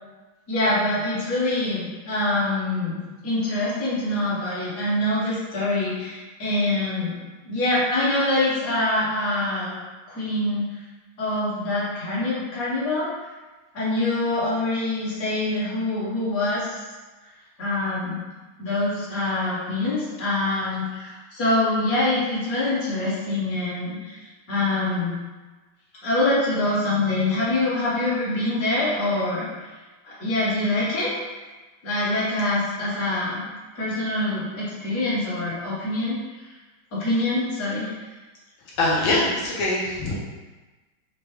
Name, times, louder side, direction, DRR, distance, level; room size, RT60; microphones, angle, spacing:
voice 1, 0.5-7.1 7.4-9.7 10.1-10.6 11.2-13.1 13.7-16.8 17.6-18.2 18.6-24.2 24.5-25.1 26.0-29.5 30.0-31.1 31.8-33.4 33.7-36.2 36.9-37.9, left 2 dB, 50° left, -8 dB, 1.3 m, -25 dB
voice 2, 38.8-40.2, left 2 dB, 75° left, -5 dB, 1.3 m, -23 dB
4.6 x 2.0 x 3.1 m, 1.2 s
omnidirectional pair, 2.3 m